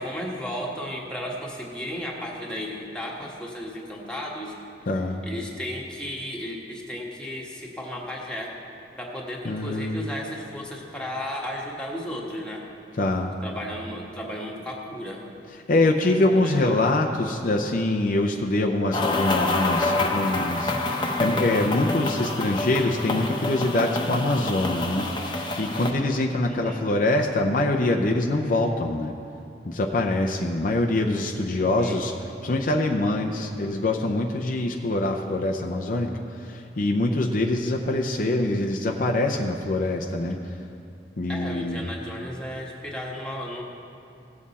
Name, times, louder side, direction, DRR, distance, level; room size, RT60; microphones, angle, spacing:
voice 1, 0.0-4.5 4.9-8.6 9.0-12.7 13.4-15.2 16.3-16.7 26.5-26.8 31.5-32.0 41.3-43.6, equal, 5° left, -2 dB, 1.3 m, -34 dB
voice 2, 4.9-5.2 9.4-10.0 12.9-13.3 15.7-29.1 29.7-40.5 41.2-41.8, left 2 dB, 50° left, 2 dB, 0.6 m, -24 dB
sound 1, 18.9-25.9, left 2 dB, 25° left, 0.9 m, -27 dB
17.0 x 7.4 x 4.2 m, 2.6 s
head